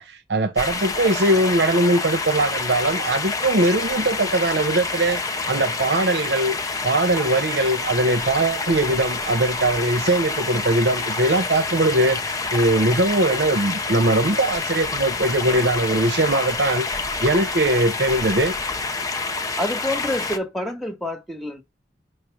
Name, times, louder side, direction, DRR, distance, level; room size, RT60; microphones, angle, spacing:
voice 1, 0.0-5.2 5.5-6.6 6.8-16.9 17.2-18.6, right 2 dB, 75° right, 0.9 m, -21 dB
sound 1, 0.6-20.4, left 3 dB, 20° left, 0.8 m, -27 dB
voice 2, 19.5-21.6, left 1 dB, ahead, 1.3 m, -27 dB
6.6 x 3.2 x 5.8 m
head